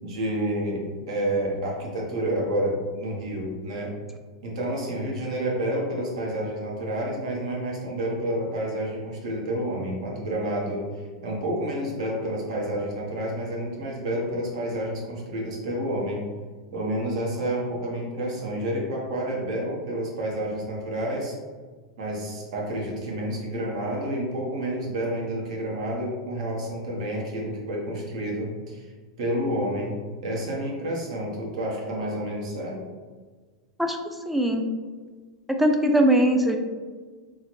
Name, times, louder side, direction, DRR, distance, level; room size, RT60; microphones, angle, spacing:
voice 1, 0.0-3.9 4.4-16.2 16.7-21.4 22.0-28.9 29.2-29.9 30.2-32.8, right 1 dB, 70° right, -2 dB, 0.9 m, -29 dB
voice 2, 34.3-34.6 35.5-36.6, right 1 dB, 5° right, 4 dB, 0.4 m, -20 dB
3.8 x 2.1 x 3.0 m, 1.4 s
hypercardioid pair, 115°, 4 cm